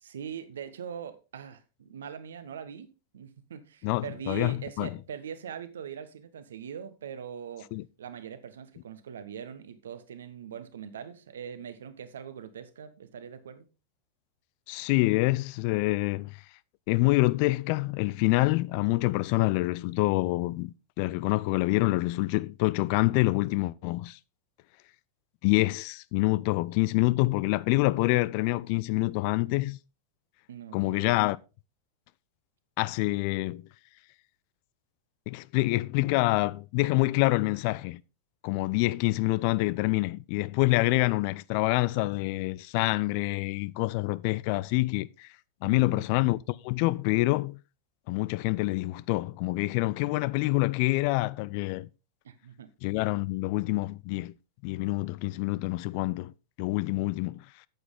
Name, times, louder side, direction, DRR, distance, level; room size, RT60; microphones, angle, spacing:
voice 1, 0.0-7.7 8.0-13.6 30.5-31.0 45.6-46.1 52.2-52.7, right 8 dB, 65° right, 1.1 m, -42 dB
voice 2, 3.8-4.9 7.7-7.8 14.7-16.4 16.9-24.2 25.4-29.8 30.7-31.4 32.8-33.6 35.3-38.0 38.4-45.3 45.6-46.4 46.6-47.6 48.1-51.9 52.8-54.3 54.6-56.3 56.6-57.4, left 21 dB, 45° left, 0.4 m, -26 dB
9.0 x 8.1 x 3.7 m
figure-of-eight pair, 90°, 0 cm